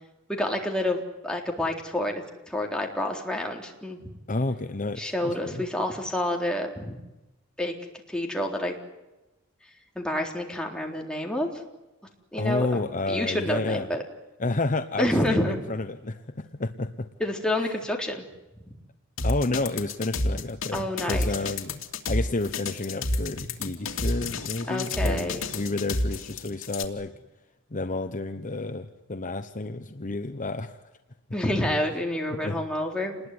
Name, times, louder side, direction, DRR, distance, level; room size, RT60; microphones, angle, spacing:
voice 1, 0.3-2.1 2.5-4.0 5.0-7.0 7.6-7.7 8.1-8.8 10.0-11.5 12.3-12.8 13.1-14.0 15.0-15.6 17.2-18.2 18.6-18.7 20.7-21.3 24.7-25.4 31.3-33.2, left 1 dB, 5° left, 0 dB, 3.7 m, -28 dB
voice 2, 4.3-5.6 12.3-13.9 14.4-17.1 17.6-17.7 19.2-21.7 22.1-27.1 27.7-30.8 32.3-32.6, left 2 dB, 40° left, 8 dB, 1.0 m, -30 dB
sound 1, 19.2-26.9, left 2 dB, 80° left, 2.8 m, -29 dB
28.0 x 20.5 x 9.7 m, 1.0 s
head